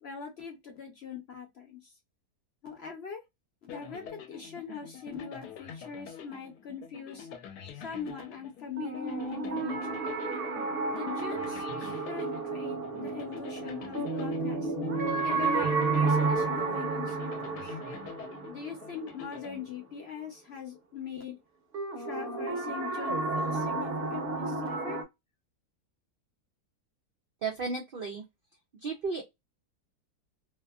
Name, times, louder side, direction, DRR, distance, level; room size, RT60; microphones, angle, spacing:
voice 1, 0.0-1.9 2.6-3.2 3.6-4.0 4.3-7.3 7.7-10.1 10.9-14.7 15.2-17.7 18.4-21.4 22.0-25.0, left 6 dB, 55° left, 0.8 m, -41 dB
sound 1, 3.7-20.3, left 7 dB, 85° left, 1.2 m, -47 dB
sound 2, 8.8-19.6 21.7-25.0, right 3 dB, 45° right, 0.9 m, -31 dB
voice 2, 27.4-28.2 28.8-29.2, right 4 dB, 65° right, 0.5 m, -33 dB
2.8 x 2.5 x 2.2 m
omnidirectional pair, 1.7 m